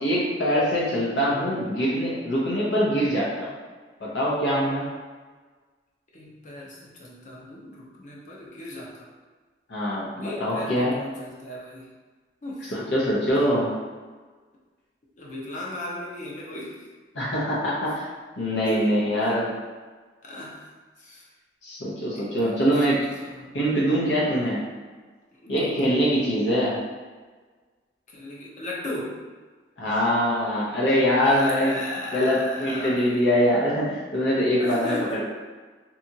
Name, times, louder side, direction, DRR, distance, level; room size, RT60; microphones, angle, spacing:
voice 1, 0.0-3.5 4.0-4.9 9.7-11.0 12.7-13.7 17.1-18.0 18.4-19.5 21.6-23.1 23.5-24.6 25.5-26.8 29.8-31.8 32.1-34.9, equal, 90° left, -6 dB, 0.7 m, -23 dB
voice 2, 6.1-9.1 10.2-11.9 12.4-12.9 15.2-16.9 18.7-18.8 20.2-20.7 21.0-21.2 22.1-22.5 23.2-23.5 24.4-24.5 25.4-25.9 28.1-29.1 31.2-33.2 34.6-35.2, left 1 dB, 45° left, -4 dB, 0.6 m, -36 dB
2.8 x 2.4 x 2.7 m, 1.4 s
head